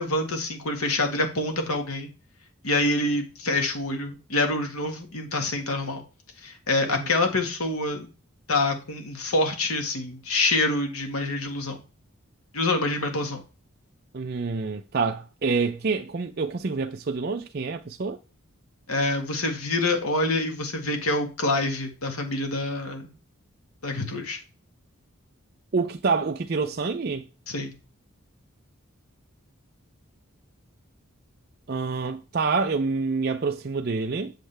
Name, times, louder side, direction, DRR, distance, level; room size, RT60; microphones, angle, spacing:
voice 1, 0.0-2.1 2.6-6.0 6.4-8.1 8.5-11.8 12.5-13.4 18.9-23.1 23.8-24.4 27.5-27.7, left 2 dB, 85° left, 1.8 m, -26 dB
voice 2, 14.1-18.2 25.7-27.3 31.7-34.3, right 4 dB, 45° right, 0.5 m, -27 dB
8.2 x 6.4 x 3.4 m
head